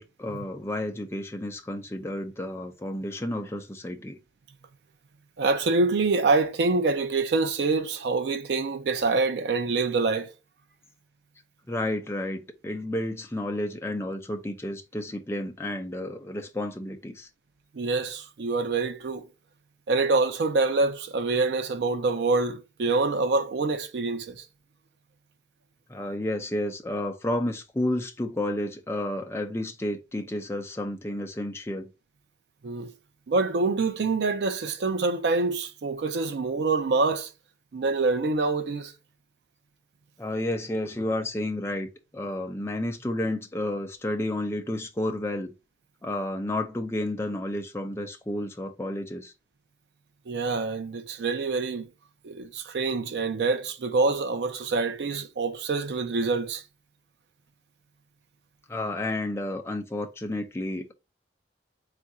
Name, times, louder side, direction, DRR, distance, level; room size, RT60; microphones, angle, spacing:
voice 1, 0.0-4.2 11.7-17.3 25.9-31.9 40.2-45.5 46.0-49.3 58.7-60.9, left 1 dB, 15° left, 0.4 m, -31 dB
voice 2, 5.4-10.3 17.7-19.3 19.9-24.4 32.6-32.9 33.3-37.3 37.7-38.9 50.3-51.9 52.2-56.6, right 3 dB, 80° right, 0.5 m, -26 dB
3.6 x 2.5 x 4.1 m
head